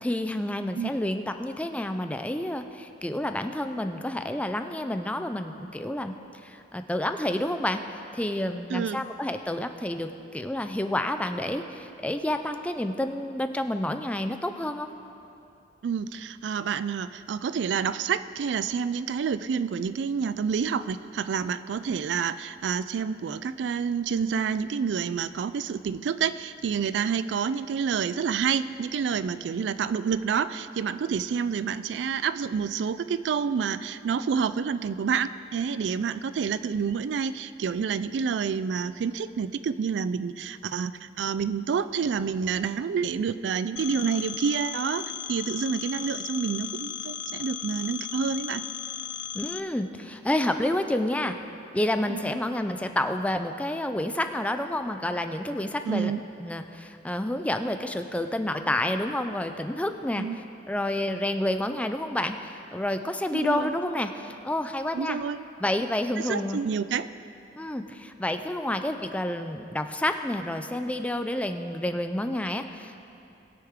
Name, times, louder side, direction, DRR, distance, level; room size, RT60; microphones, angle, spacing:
voice 1, 0.0-6.2 6.4-7.8 8.1-14.9 49.3-51.4 51.7-56.1 56.4-60.3 60.7-65.2 65.6-66.6 67.6-73.0, left 1 dB, 10° left, 7 dB, 0.4 m, -29 dB
voice 2, 8.7-9.1 15.8-48.6 52.1-52.2 55.9-56.2 60.2-60.4 63.3-63.7 64.9-65.4 66.3-67.1, right 6 dB, 75° right, 14 dB, 0.3 m, -28 dB
Telephone, 43.8-49.6, left 10 dB, 90° left, 0.4 m, -36 dB
20.0 x 6.7 x 3.6 m, 2.7 s
head